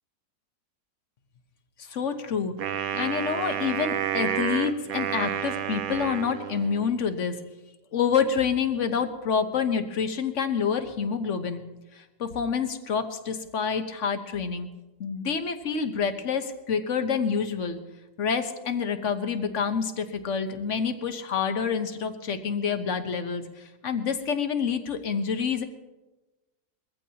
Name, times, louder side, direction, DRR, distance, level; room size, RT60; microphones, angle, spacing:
voice 1, 1.8-2.5 2.9-7.4 7.9-11.6 12.0-14.7 15.0-17.8 18.2-25.6, left 6 dB, 55° left, 8 dB, 1.3 m, -27 dB
Wind instrument woodwind instrument, 2.6-7.0, right 9 dB, 70° right, 1.1 m, -30 dB
22.0 x 14.5 x 2.9 m, 1.1 s
omnidirectional pair, 1.6 m